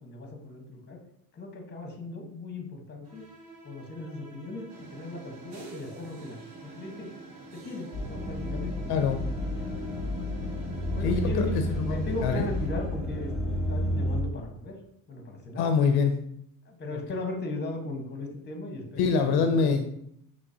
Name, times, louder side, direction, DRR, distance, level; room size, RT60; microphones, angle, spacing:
voice 1, 0.0-1.0 1.3-3.2 3.6-7.1 7.5-8.7 10.9-14.8 15.1-15.7 16.6-19.8, left 2 dB, 25° left, 3 dB, 1.1 m, -37 dB
sound 1, 3.0-13.3, right 2 dB, 65° right, 1.6 m, -50 dB
sound 2, 4.7-12.7, right 1 dB, 80° right, 1.1 m, -45 dB
sound 3, 7.9-14.2, left 1 dB, ahead, 1.5 m, -31 dB
voice 2, 8.9-9.2 11.0-11.5 11.7-12.5 15.6-16.2 19.0-19.9, left 5 dB, 70° left, 7 dB, 0.5 m, -25 dB
5.9 x 3.0 x 2.7 m, 0.72 s
cardioid pair, 95°, 39 cm